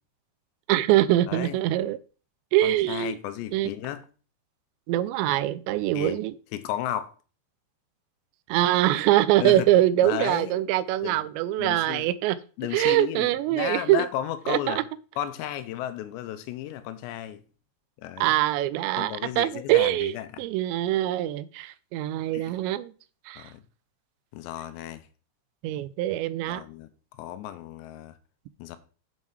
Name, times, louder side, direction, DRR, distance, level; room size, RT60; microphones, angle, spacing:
voice 1, 0.7-2.0 2.5-3.2 3.5-3.7 4.9-6.3 8.5-12.4 12.7-14.1 14.5-14.8 18.2-20.1 20.4-22.9 23.3-23.5 25.6-26.6, right 14 dB, 90° right, 2.8 m, -23 dB
voice 2, 1.3-1.6 2.6-4.1 6.0-6.2 6.5-7.1 9.4-9.7 10.0-10.6 11.0-11.2 11.6-12.0 12.6-14.8 15.2-17.4 18.0-18.4 19.0-20.5 22.3-22.6 23.4-23.6 24.3-25.0 26.5-26.9 27.2-28.1 28.6-28.8, left 12 dB, 85° left, 2.9 m, -34 dB
7.6 x 5.6 x 4.7 m
omnidirectional pair, 5.0 m